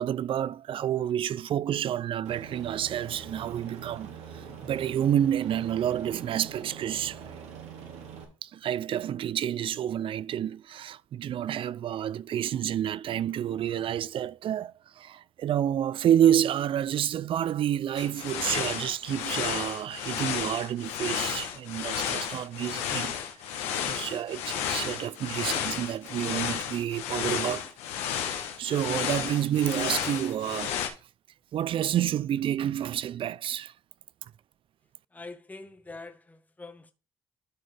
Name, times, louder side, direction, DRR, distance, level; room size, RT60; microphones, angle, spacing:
voice 1, 0.0-7.2 8.4-23.1 23.9-27.7 28.1-30.8 31.5-33.7, right 10 dB, 55° right, 0.4 m, -29 dB
Aircraft, 2.2-8.2, right 7 dB, 85° right, 1.7 m, -44 dB
sound 1, 18.0-30.9, left 9 dB, 90° left, 1.1 m, -32 dB
voice 2, 35.1-36.9, left 3 dB, 15° left, 0.9 m, -44 dB
12.5 x 4.3 x 3.3 m
supercardioid pair, 70°, 11 cm